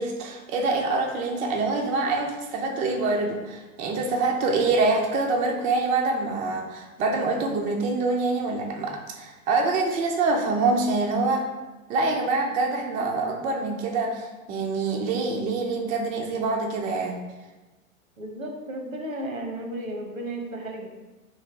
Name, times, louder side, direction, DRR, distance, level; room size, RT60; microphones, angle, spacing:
voice 1, 0.0-11.4 11.9-17.2, right 3 dB, 20° right, 1 dB, 0.3 m, -25 dB
voice 2, 18.2-20.9, right 1 dB, 80° right, 2 dB, 1.0 m, -34 dB
3.3 x 3.2 x 4.4 m, 1.1 s
figure-of-eight pair, 90°, 40 cm